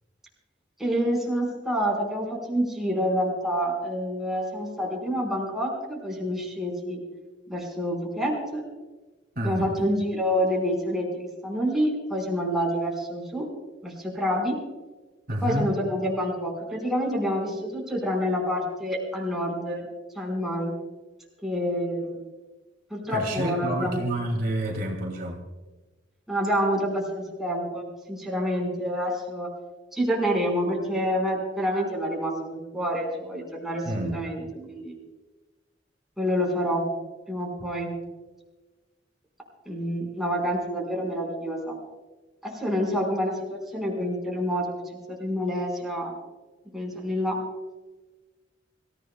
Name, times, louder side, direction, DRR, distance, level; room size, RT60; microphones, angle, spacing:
voice 1, 0.8-7.0 7.5-8.6 9.4-13.5 13.8-14.6 15.4-19.8 20.1-20.7 21.4-22.1 22.9-24.1 26.3-29.5 29.9-34.9 36.2-36.8 37.3-37.9 39.6-41.8 42.4-44.6 45.1-46.2 46.7-47.4, equal, ahead, -2 dB, 4.8 m, -27 dB
voice 2, 9.4-9.7 15.3-15.7 23.1-25.4 33.8-34.2, right 1 dB, 55° right, 1 dB, 2.5 m, -28 dB
26.0 x 15.5 x 2.3 m, 1.2 s
head